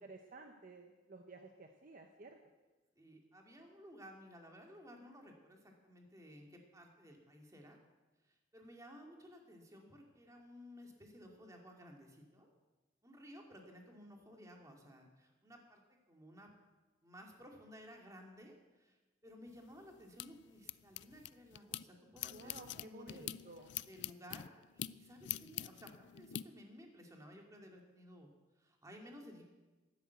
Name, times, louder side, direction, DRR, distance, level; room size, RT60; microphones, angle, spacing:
voice 1, 0.0-2.3 22.3-23.7, right 2 dB, 45° right, 4 dB, 1.0 m, -54 dB
voice 2, 3.0-7.8 8.2-12.5 13.0-15.8 16.1-16.5 17.0-19.0 19.2-23.3 23.9-28.3 28.6-29.4, equal, 20° right, 1 dB, 2.3 m, -56 dB
sound 1, 19.5-21.8 22.2-26.4, left 13 dB, 65° left, 0.4 m, -45 dB
13.0 x 10.5 x 8.1 m, 1.2 s
head